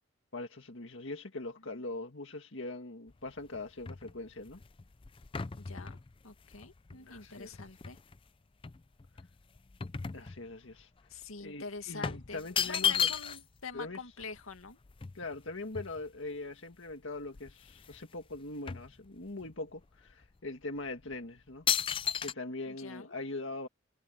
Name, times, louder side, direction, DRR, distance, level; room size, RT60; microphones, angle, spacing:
voice 1, 0.3-4.6 7.0-7.7 10.1-10.9 11.4-13.1 13.7-14.0 15.1-21.7 22.2-23.7, left 2 dB, 65° left, 1.9 m, -42 dB
sound 1, 3.1-8.2 8.6-10.8 11.1-11.3 12.0-13.6 13.9-14.0 14.2-16.4 16.9-17.0 17.3-18.0 18.3-19.5 20.1-20.3 20.9-21.1 21.7-22.3, left 7 dB, 25° left, 0.4 m, -35 dB
voice 2, 5.5-6.0 6.2-8.0 11.1-14.8 22.7-23.1, left 4 dB, 90° left, 2.2 m, -45 dB
head